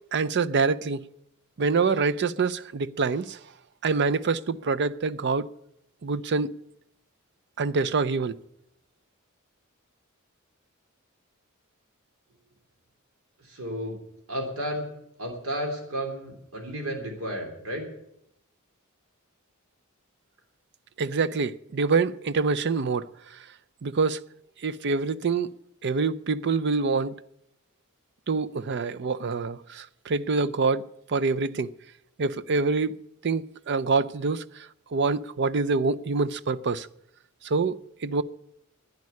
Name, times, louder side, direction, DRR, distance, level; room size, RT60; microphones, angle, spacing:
voice 1, 0.1-1.0 1.6-3.4 3.8-5.5 6.0-6.5 7.6-8.4 21.0-23.1 23.8-24.2 24.6-25.5 25.8-27.2 28.3-31.7 32.2-33.0 33.2-34.7 34.9-36.9 37.4-37.8 38.0-38.2, right 4 dB, 55° right, 0.5 m, -26 dB
voice 2, 13.4-14.0 14.3-14.9 15.2-17.8, equal, 80° right, 3.5 m, -32 dB
11.0 x 9.7 x 9.5 m
head